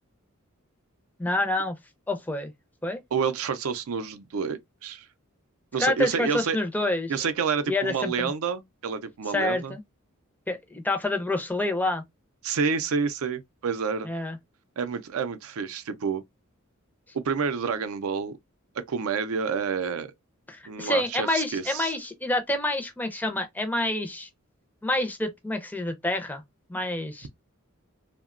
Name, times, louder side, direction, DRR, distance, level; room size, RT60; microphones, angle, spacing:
voice 1, 1.2-1.7 2.1-2.5 2.8-3.0 5.8-7.1 7.7-8.3 9.3-9.8 10.5-12.0 14.1-14.4 20.5-24.3 24.8-26.4 26.7-27.3, left 2 dB, 10° left, 0.5 m, -27 dB
voice 2, 3.1-5.1 5.7-6.6 7.1-9.8 12.4-14.1 14.8-16.2 17.1-18.4 18.8-20.1 20.7-21.9, right 6 dB, 80° right, 0.4 m, -29 dB
2.8 x 2.1 x 2.3 m
head